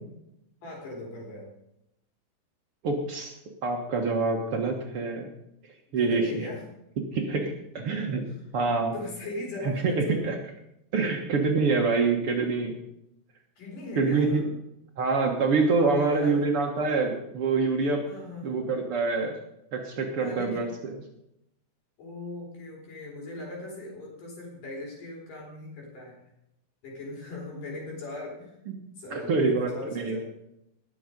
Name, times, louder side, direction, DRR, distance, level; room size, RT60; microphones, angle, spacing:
voice 1, 0.6-1.5 5.9-6.6 8.6-10.3 13.6-14.5 15.6-16.4 18.1-18.6 20.2-20.7 22.0-26.2 26.8-28.5 29.0-30.3, left 2 dB, 80° left, -2 dB, 5.8 m, -39 dB
voice 2, 2.8-3.3 3.6-5.3 5.9-6.4 7.1-8.2 8.5-8.9 9.6-10.4 10.9-12.8 14.0-14.4 15.0-18.0 18.4-19.4 19.7-20.7 28.7-28.8 29.1-30.2, right 4 dB, 55° right, 2 dB, 1.9 m, -26 dB
19.5 x 7.1 x 5.2 m, 0.82 s
omnidirectional pair, 3.7 m